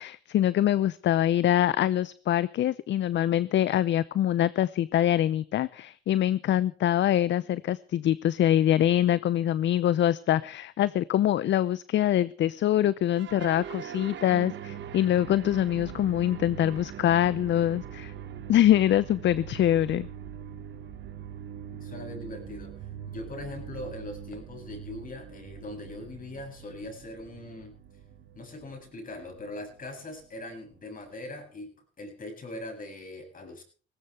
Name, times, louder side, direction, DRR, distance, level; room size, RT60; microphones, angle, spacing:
voice 1, 0.0-18.1 18.5-20.1, left 11 dB, 65° left, 18 dB, 0.7 m, -24 dB
sound 1, 13.1-31.5, right 9 dB, 65° right, 1.7 m, -42 dB
voice 2, 21.7-22.8 23.1-27.8 28.3-33.6, left 2 dB, 45° left, 4 dB, 7.9 m, -41 dB
19.5 x 17.0 x 3.4 m, 0.41 s
cardioid pair, 90°, 20 cm